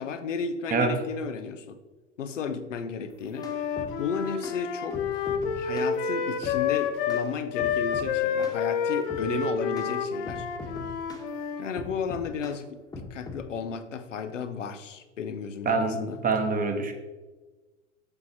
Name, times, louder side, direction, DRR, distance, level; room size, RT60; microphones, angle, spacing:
voice 1, 0.0-1.8 2.2-10.5 11.6-12.7 13.0-16.2, left 6 dB, 75° left, 10 dB, 0.8 m, -34 dB
sound 1, 3.1-3.9 4.4-4.6 4.9-5.9 6.4-6.6 7.1-7.2 7.6-8.1 8.4-8.6 9.1-9.3 9.8-9.9 10.3-11.3 11.8-12.6 12.9-13.4, left 2 dB, 10° left, 1.3 m, -40 dB
Wind instrument woodwind instrument, 3.3-11.7, left 6 dB, 50° left, 1.1 m, -29 dB
voice 2, 15.6-16.9, right 4 dB, 20° right, 5 dB, 1.2 m, -25 dB
7.1 x 6.9 x 4.3 m, 1.2 s
figure-of-eight pair, 85°, 37 cm